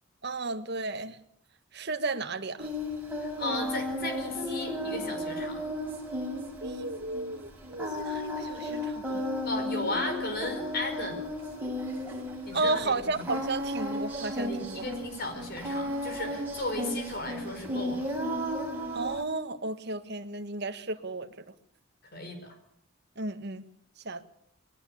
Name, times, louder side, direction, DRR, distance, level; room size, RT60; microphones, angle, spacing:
voice 1, 0.2-1.2 1.7-2.7 6.6-9.3 12.5-14.9 18.9-21.4 23.2-23.6 24.0-24.2, right 3 dB, 50° right, 9 dB, 1.5 m, -33 dB
Singing, 2.6-19.2, left 1 dB, 10° right, 6.7 m, -34 dB
voice 2, 3.2-5.6 9.4-11.2 12.5-13.2 14.4-18.1 22.1-22.5, left 2 dB, 45° left, 7 dB, 4.9 m, -35 dB
21.0 x 17.5 x 8.6 m, 0.71 s
head